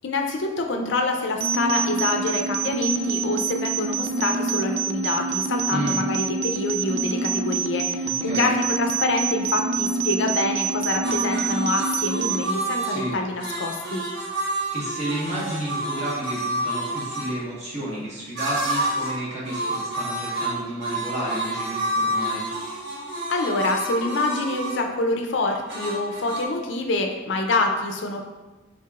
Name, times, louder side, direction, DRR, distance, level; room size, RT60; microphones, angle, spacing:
voice 1, 0.0-14.0 23.3-28.2, left 2 dB, 65° left, 3 dB, 0.5 m, -26 dB
sound 1, 1.4-12.4, right 4 dB, 85° right, 0.3 m, -26 dB
voice 2, 8.0-8.5 12.9-13.2 14.7-22.5, right 1 dB, 40° right, -6 dB, 1.3 m, -31 dB
sound 2, 11.0-17.3 18.4-19.2 19.4-24.8 25.7-26.5, right 1 dB, 60° right, 1.2 m, -29 dB
4.6 x 3.9 x 2.4 m, 1.2 s
head